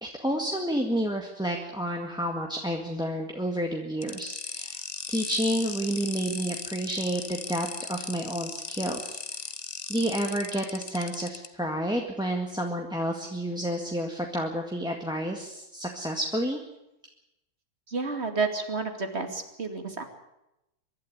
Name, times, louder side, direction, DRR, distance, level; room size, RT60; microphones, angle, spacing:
voice 1, 0.0-4.8 5.1-9.2 9.9-16.6, right 1 dB, 5° right, 2 dB, 1.7 m, -30 dB
sound 1, 4.0-11.5, left 4 dB, 30° left, 0.9 m, -37 dB
voice 2, 17.9-20.0, right 4 dB, 35° right, 6 dB, 2.7 m, -30 dB
23.5 x 12.0 x 9.9 m, 0.89 s
omnidirectional pair, 1.9 m